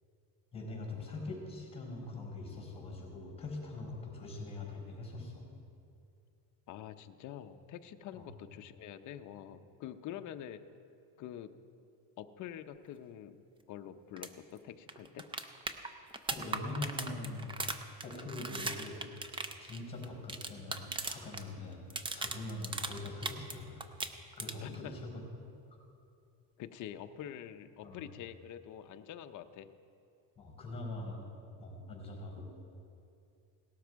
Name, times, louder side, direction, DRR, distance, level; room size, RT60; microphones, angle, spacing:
voice 1, 0.5-5.5 8.1-8.2 16.3-17.6 18.0-19.0 19.6-23.9 24.4-25.2 27.8-28.0 30.4-31.3 31.6-32.4, left 2 dB, 10° left, 0 dB, 4.4 m, -43 dB
voice 2, 6.7-10.6 11.2-11.5 12.2-13.4 13.7-15.3 24.6-25.0 26.6-29.7, left 10 dB, 40° left, 8 dB, 0.6 m, -46 dB
sound 1, 14.2-14.3 14.6-14.7 14.9-21.4 21.7-23.5 23.8-24.8 26.8-26.9, right 3 dB, 10° right, 0.4 m, -39 dB
18.0 x 12.5 x 4.6 m, 2.6 s
cardioid pair, 155°, 45 cm